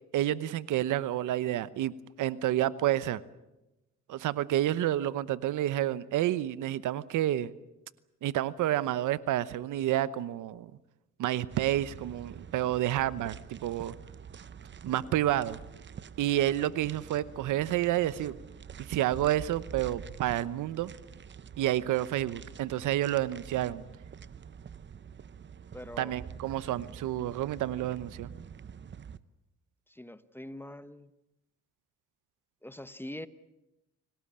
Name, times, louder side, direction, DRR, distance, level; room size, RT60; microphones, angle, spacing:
voice 1, 0.1-1.9 2.2-3.2 4.1-7.5 8.2-10.7 11.2-13.9 14.8-15.6 16.2-18.3 18.8-20.9 21.6-23.8 26.0-28.3, right 13 dB, 80° right, 17 dB, 1.0 m, -29 dB
sound 1, 11.5-29.2, right 7 dB, 40° right, 0.9 m, -47 dB
voice 2, 25.7-26.1 29.9-31.1 32.6-33.3, left 1 dB, 5° left, 13 dB, 1.2 m, -43 dB
27.5 x 18.5 x 8.7 m, 0.96 s
cardioid pair, 90°, 30 cm